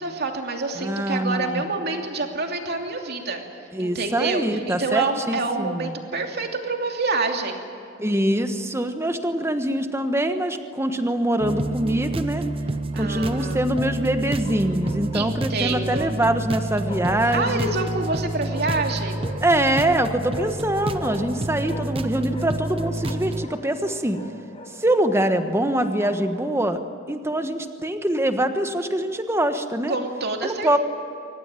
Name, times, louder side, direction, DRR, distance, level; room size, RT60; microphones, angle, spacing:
voice 1, 0.0-3.4 3.8-7.6 12.9-13.6 15.1-16.1 17.3-19.3 29.9-30.8, right 3 dB, 55° right, 3 dB, 2.8 m, -27 dB
voice 2, 0.8-1.6 3.7-5.9 8.0-12.5 13.0-17.7 19.4-24.2 24.8-26.8 27.1-29.9 30.4-30.8, right 1 dB, 15° right, 8 dB, 1.3 m, -24 dB
Bark, 11.3-12.0 14.4-15.5 16.9-17.8 18.4-19.5 20.3-22.0 22.3-24.7 25.4-26.3, left 1 dB, 30° left, 4.4 m, -40 dB
sound 1, 11.4-23.5, right 2 dB, 30° right, 0.7 m, -29 dB
23.5 x 19.0 x 9.1 m, 2.6 s
head